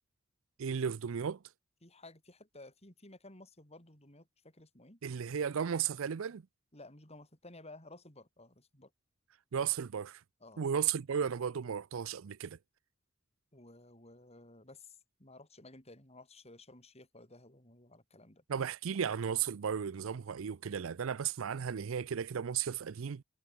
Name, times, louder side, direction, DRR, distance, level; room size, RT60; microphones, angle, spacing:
voice 1, 0.6-1.4 5.0-6.4 9.5-10.2 10.6-12.6 18.5-23.2, right 7 dB, 70° right, 0.5 m, -34 dB
voice 2, 1.8-5.0 6.7-8.9 10.4-10.7 13.5-18.4, left 2 dB, 30° left, 7.3 m, -55 dB
head